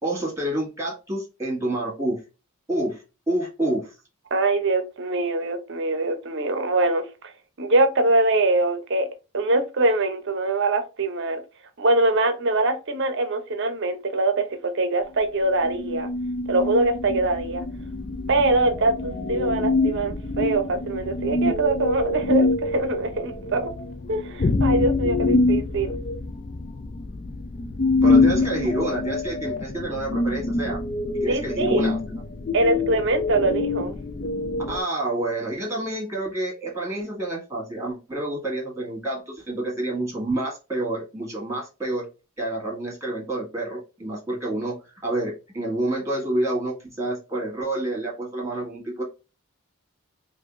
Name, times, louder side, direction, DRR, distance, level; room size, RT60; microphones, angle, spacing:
voice 1, 0.0-2.2 2.7-3.9 28.0-30.8 31.2-32.2 34.7-42.1 42.4-49.0, right 1 dB, 15° right, 1.6 m, -28 dB
voice 2, 4.3-7.3 7.6-9.1 9.3-11.4 11.8-16.1 16.5-17.6 18.3-23.7 24.1-26.0 31.3-31.9 32.5-33.9, right 2 dB, 50° right, 0.7 m, -23 dB
sound 1, 15.6-34.8, left 3 dB, 35° left, 0.3 m, -25 dB
4.8 x 2.6 x 2.5 m
head